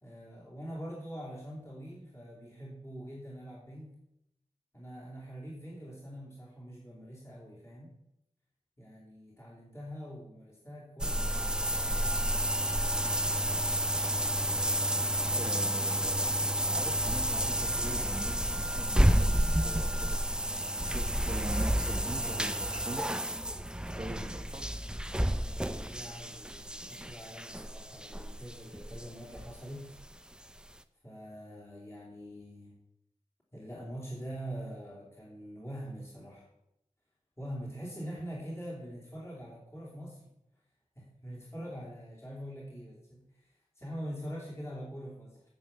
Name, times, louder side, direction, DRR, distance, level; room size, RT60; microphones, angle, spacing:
voice 1, 0.0-4.0 4.7-7.9 8.8-12.5 23.8-24.3 25.4-30.0 31.0-32.7 33.5-36.5 37.4-40.3 40.9-45.4, equal, 20° left, -5 dB, 3.0 m, -44 dB
sound 1, 11.0-29.7 30.0-30.1 30.6-30.7, right 1 dB, 5° right, 0.6 m, -30 dB
voice 2, 15.3-23.1 23.9-24.7, right 2 dB, 35° right, 4 dB, 1.5 m, -43 dB
9.6 x 5.7 x 7.5 m, 0.85 s
cardioid pair, 45°, 14 cm